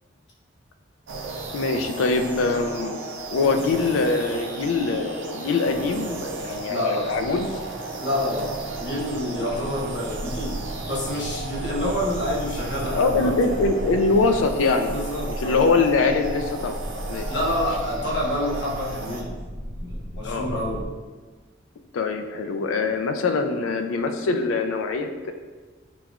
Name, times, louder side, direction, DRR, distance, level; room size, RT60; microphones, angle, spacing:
sound 1, 1.1-19.2, right 2 dB, 70° right, 0.4 m, -35 dB
voice 1, 1.5-3.0 3.3-7.5 9.4-9.5 12.8-15.1 15.4-16.8 17.1-17.3 20.2-20.5 21.9-25.3, left 3 dB, 85° left, 6 dB, 0.3 m, -23 dB
voice 2, 6.7-7.1 8.0-10.6 10.9-13.6 14.9-15.7 17.3-19.4 19.8-20.9, left 1 dB, 60° left, -4 dB, 0.9 m, -28 dB
sound 2, 8.6-20.9, equal, 25° left, 0.6 m, -35 dB
5.8 x 2.4 x 2.3 m, 1.4 s
head